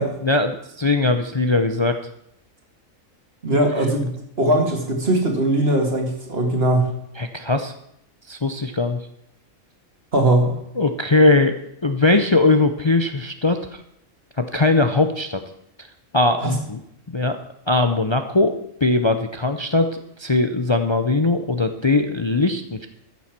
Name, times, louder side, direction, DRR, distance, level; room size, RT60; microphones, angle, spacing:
voice 1, 0.2-2.0 7.2-7.7 8.3-9.0 10.8-11.6 11.8-13.8 14.4-15.4 16.1-16.8 17.1-17.4 17.7-22.9, left 2 dB, 30° left, 7 dB, 0.5 m, -20 dB
voice 2, 3.4-4.1 4.4-6.9 10.1-10.5 16.4-16.5, right 1 dB, 45° right, 3 dB, 2.4 m, -20 dB
13.5 x 7.2 x 6.0 m, 0.76 s
omnidirectional pair, 1.4 m